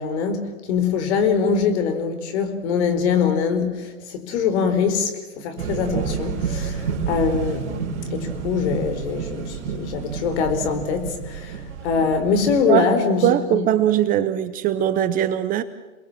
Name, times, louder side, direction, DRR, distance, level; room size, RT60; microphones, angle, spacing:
voice 1, 0.0-13.6, left 6 dB, 50° left, 8 dB, 4.8 m, -23 dB
sound 1, 5.6-12.6, right 6 dB, 55° right, 4.1 m, -29 dB
voice 2, 13.2-15.6, right 11 dB, 20° right, 12 dB, 0.7 m, -20 dB
28.5 x 21.0 x 7.5 m, 1.2 s
hypercardioid pair, 130°, 42 cm